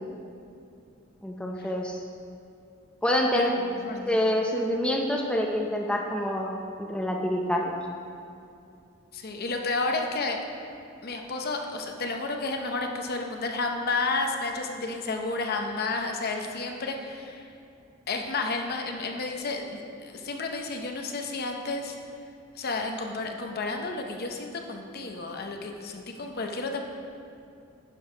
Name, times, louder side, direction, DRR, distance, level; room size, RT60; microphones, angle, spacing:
voice 1, 1.2-2.0 3.0-3.5 4.1-6.5 6.8-7.7, left 1 dB, 5° left, 0 dB, 0.6 m, -26 dB
voice 2, 3.4-4.2 9.1-10.4 11.0-17.5 18.1-22.0 22.5-26.8, left 3 dB, 50° left, 3 dB, 0.7 m, -31 dB
10.5 x 4.6 x 5.1 m, 2.5 s
head